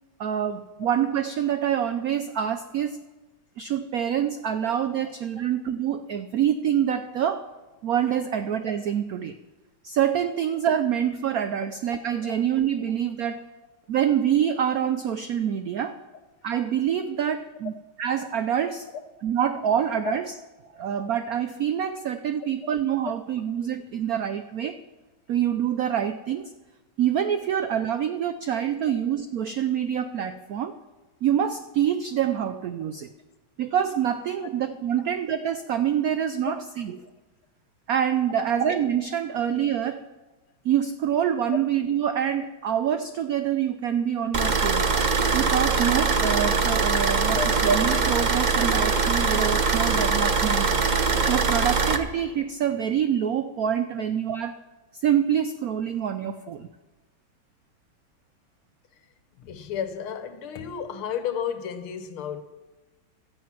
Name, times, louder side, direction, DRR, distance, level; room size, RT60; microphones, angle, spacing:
voice 1, 0.2-3.0 3.6-7.5 7.8-9.4 9.8-13.5 13.9-16.0 16.4-17.7 18.0-18.9 19.2-20.3 20.7-24.8 25.3-26.5 27.0-30.7 31.2-33.1 33.6-37.0 37.9-40.0 40.6-44.9 45.3-50.7 51.3-54.5 54.9-56.7, right 9 dB, 80° right, 0.8 m, -26 dB
sound 1, 44.3-52.0, right 4 dB, 45° right, 0.6 m, -22 dB
voice 2, 59.4-62.4, left 8 dB, 85° left, 2.0 m, -32 dB
17.0 x 13.0 x 5.9 m
omnidirectional pair, 2.3 m